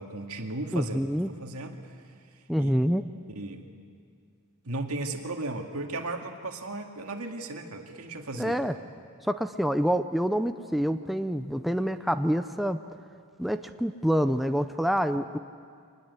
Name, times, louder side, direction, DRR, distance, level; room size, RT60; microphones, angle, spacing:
voice 1, 0.0-1.9 2.6-2.7 3.3-3.7 4.6-8.6, right 2 dB, 75° right, 4 dB, 2.1 m, -36 dB
voice 2, 0.7-1.3 2.5-3.0 8.4-8.7 9.2-12.8 13.4-15.4, equal, ahead, 8 dB, 0.5 m, -27 dB
25.5 x 20.5 x 8.3 m, 2.2 s
head